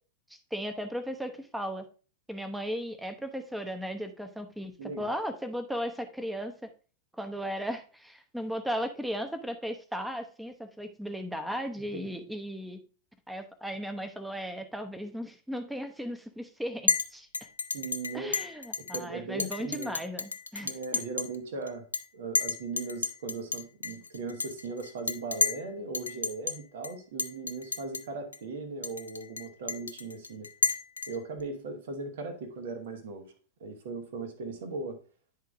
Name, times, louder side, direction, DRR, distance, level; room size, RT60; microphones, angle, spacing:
voice 1, 0.3-1.9 2.3-6.5 7.2-12.8 13.3-17.3 18.1-21.0, equal, 5° right, 7 dB, 0.9 m, -36 dB
voice 2, 4.8-5.1 11.9-12.1 17.7-18.3 18.9-19.9 20.6-21.9 22.1-30.5 31.1-33.3 33.6-35.0, right 3 dB, 55° right, 7 dB, 1.2 m, -38 dB
Chink clink, 16.9-17.1 17.3-19.0 19.4-21.4 21.7-22.0 22.3-25.7 25.9-26.6 26.8-26.9 27.2-28.0 28.3-28.4 28.8-31.4, left 4 dB, 75° left, 0.5 m, -31 dB
10.5 x 3.7 x 3.6 m, 0.37 s
figure-of-eight pair, 90°, 0 cm